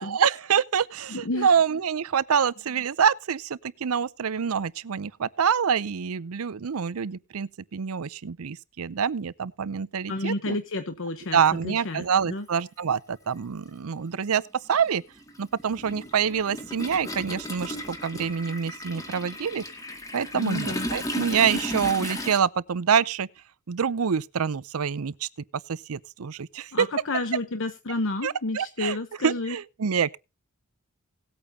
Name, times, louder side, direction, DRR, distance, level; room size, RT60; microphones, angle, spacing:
voice 1, 0.0-10.6 11.3-14.4 14.7-15.0 15.4-19.6 20.1-23.3 23.7-25.3 25.7-26.9 28.2-29.0 29.2-30.2, right 7 dB, 85° right, 0.6 m, -26 dB
voice 2, 1.1-1.5 10.1-12.4 20.3-20.9 26.7-29.6, left 2 dB, 65° left, 1.0 m, -31 dB
Toilet flush, 11.9-12.0 13.3-13.4 13.8-22.4, left 1 dB, 15° left, 2.2 m, -35 dB
18.5 x 8.7 x 2.8 m
head